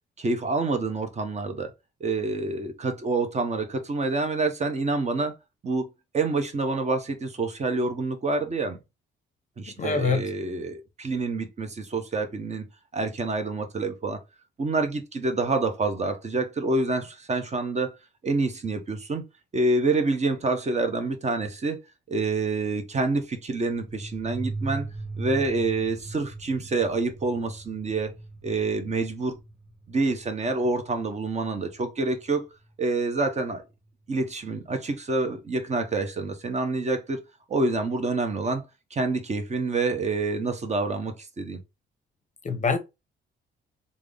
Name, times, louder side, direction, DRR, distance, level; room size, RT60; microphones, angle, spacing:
voice 1, 0.2-1.7 2.0-5.3 5.6-5.9 6.1-8.8 9.6-12.6 12.9-14.2 14.6-17.9 18.2-19.2 19.5-21.8 22.1-24.9 25.2-28.2 28.4-29.3 29.9-32.5 32.8-33.6 34.1-37.2 37.5-38.6 38.9-41.6, right 3 dB, 35° right, 0.8 m, -27 dB
voice 2, 9.7-10.3 42.4-42.8, left 5 dB, 40° left, 0.6 m, -25 dB
sound 1, 23.6-32.0, right 2 dB, 10° right, 1.2 m, -39 dB
3.6 x 2.1 x 3.5 m
cardioid pair, 90°, 20 cm